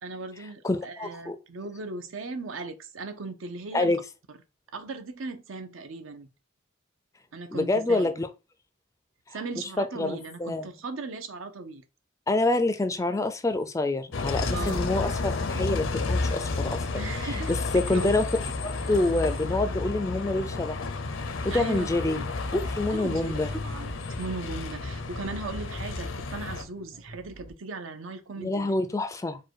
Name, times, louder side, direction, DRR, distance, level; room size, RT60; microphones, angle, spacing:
voice 1, 0.0-4.0 4.7-6.3 7.3-8.1 9.3-11.8 14.5-14.9 17.0-17.5 17.9-18.1 21.5-22.2 22.9-28.7, right 3 dB, 80° right, 0.7 m, -38 dB
voice 2, 0.6-1.4 3.7-4.0 7.5-8.3 9.6-10.7 12.3-16.9 17.2-18.3 18.6-21.0 21.4-22.2 22.5-23.5 28.4-29.4, left 2 dB, 15° left, 0.3 m, -27 dB
Bus, 14.1-26.6, left 3 dB, 75° left, 0.6 m, -31 dB
sound 1, 21.8-27.5, right 1 dB, 35° right, 0.6 m, -47 dB
4.6 x 2.2 x 4.5 m
head